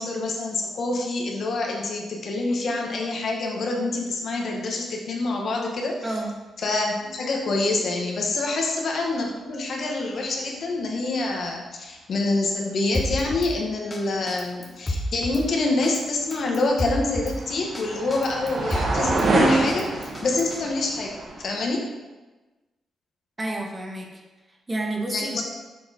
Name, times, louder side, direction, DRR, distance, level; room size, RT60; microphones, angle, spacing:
voice 1, 0.0-6.0 6.6-21.9 25.1-25.4, left 2 dB, 60° left, 0 dB, 1.2 m, -26 dB
voice 2, 6.0-6.3 8.5-8.6 23.4-24.2 24.7-25.4, right 1 dB, 25° right, 1 dB, 1.1 m, -30 dB
Drum kit, 12.9-13.5 13.9-14.0 14.3-15.4 15.8-16.0 16.3-17.4 17.7-17.8 18.1-19.3 19.7-20.6, left 1 dB, 25° left, 1.0 m, -30 dB
sound 1, 16.4-21.7, right 2 dB, 50° right, 1.0 m, -27 dB
6.8 x 3.9 x 4.1 m, 1.2 s
cardioid pair, 90°, 0 cm